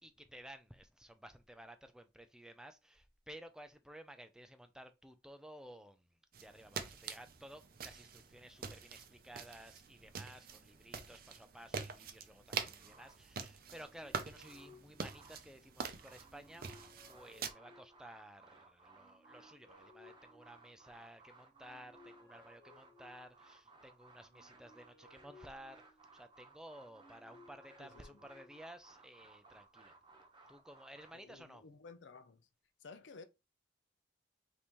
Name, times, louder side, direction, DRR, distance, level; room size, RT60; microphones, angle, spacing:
voice 1, 0.0-6.1 6.4-16.7 17.1-25.8 26.1-29.9 30.5-31.6, right 1 dB, 5° right, 0.4 m, -55 dB
sound 1, 6.3-17.5, right 6 dB, 55° right, 0.6 m, -46 dB
sound 2, 12.8-13.6 14.1-15.5 15.8-31.1, right 3 dB, 25° right, 1.0 m, -62 dB
sound 3, 13.5-15.7 16.1-18.2 18.9-21.0 21.5-23.5 24.2-26.3 26.8-28.8, left 3 dB, 10° left, 1.4 m, -63 dB
voice 2, 27.8-28.2 31.1-32.5 32.8-33.2, left 4 dB, 80° left, 0.6 m, -54 dB
5.3 x 2.8 x 3.0 m
head